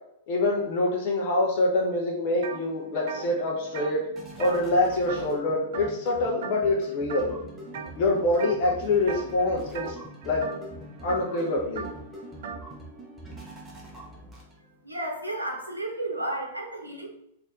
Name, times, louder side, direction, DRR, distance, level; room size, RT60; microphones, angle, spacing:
voice 1, 0.3-4.1 4.4-7.3 8.0-10.0 10.2-10.5 11.0-11.9, left 2 dB, 45° left, -1 dB, 0.7 m, -25 dB
sound 1, 2.1-14.9, right 1 dB, 5° right, 1.0 m, -44 dB
sound 2, 2.4-2.6 2.9-5.5 5.7-6.1 6.4-6.8 7.1-7.9 8.4-8.7 9.0-12.7, right 7 dB, 50° right, 0.3 m, -39 dB
voice 2, 14.8-17.1, right 1 dB, 85° right, 1 dB, 0.7 m, -32 dB
4.2 x 2.6 x 3.5 m, 0.76 s
figure-of-eight pair, 100°, 0 cm